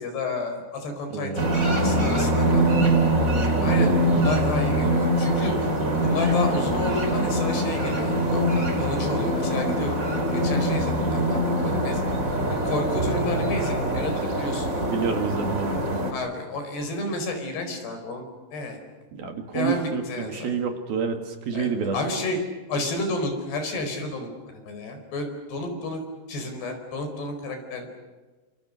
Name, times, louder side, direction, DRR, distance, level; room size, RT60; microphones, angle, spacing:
voice 1, 0.0-2.9 3.6-5.6 6.0-8.4 8.8-10.0 10.3-12.0 12.5-14.7 16.1-18.8 19.5-20.5 21.5-22.4 22.7-26.0 26.3-27.9, left 2 dB, 60° left, 5 dB, 6.7 m, -31 dB
voice 2, 1.1-2.2 3.5-4.2 14.8-16.1 19.1-22.0, right 6 dB, 60° right, 5 dB, 3.7 m, -29 dB
sound 1, 1.4-16.1, right 1 dB, 20° right, 2.7 m, -23 dB
29.0 x 27.0 x 6.6 m, 1.3 s
omnidirectional pair, 5.3 m